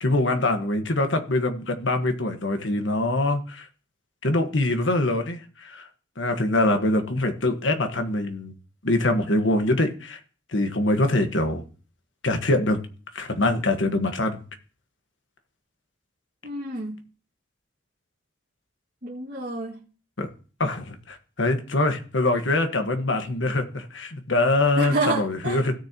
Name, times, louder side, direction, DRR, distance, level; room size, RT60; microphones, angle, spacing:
voice 1, 0.0-3.7 4.2-5.9 6.2-8.5 8.8-10.2 10.5-11.6 12.2-12.8 13.1-14.4 20.2-20.3 20.6-25.7, left 2 dB, 85° left, 1.5 m, -24 dB
voice 2, 16.4-17.0 19.0-19.8 24.8-25.6, right 2 dB, 55° right, 2.1 m, -28 dB
17.0 x 6.6 x 3.0 m
head